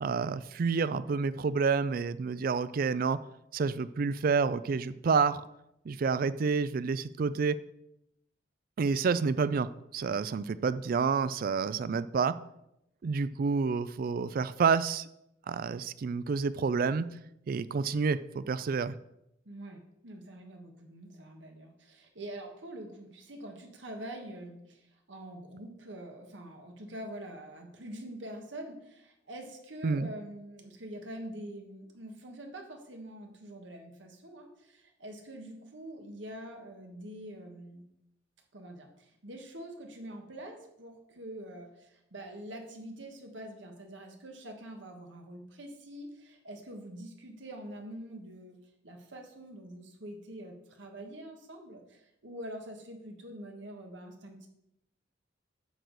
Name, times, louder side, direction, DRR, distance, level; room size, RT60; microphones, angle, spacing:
voice 1, 0.0-3.2 3.5-5.4 5.9-7.6 8.8-12.4 13.0-15.0 15.5-17.1 17.5-18.9 29.8-30.1, right 5 dB, 50° right, 15 dB, 0.3 m, -29 dB
voice 2, 19.4-37.8 38.5-48.6 48.8-54.5, right 1 dB, 80° right, 3 dB, 1.4 m, -45 dB
8.9 x 6.4 x 4.0 m, 0.82 s
head